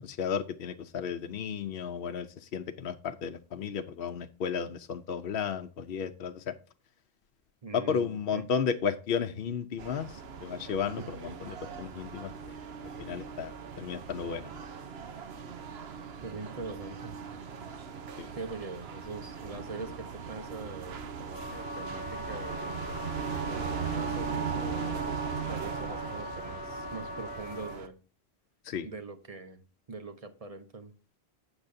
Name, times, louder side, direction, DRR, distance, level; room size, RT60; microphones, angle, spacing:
voice 1, 0.0-6.5 7.7-12.6 13.0-14.5 18.2-18.3 28.6-28.9, left 7 dB, 65° left, 7 dB, 0.8 m, -33 dB
voice 2, 7.6-8.5 11.0-11.1 16.2-17.2 18.4-22.8 23.4-28.0 28.8-29.6 29.9-30.9, right 3 dB, 35° right, 8 dB, 1.0 m, -43 dB
sound 1, 9.8-27.9, right 6 dB, 75° right, 1.1 m, -38 dB
Wind instrument woodwind instrument, 21.3-27.8, left 2 dB, 10° right, 1.8 m, -41 dB
12.0 x 8.0 x 2.6 m, 0.34 s
omnidirectional pair, 1.1 m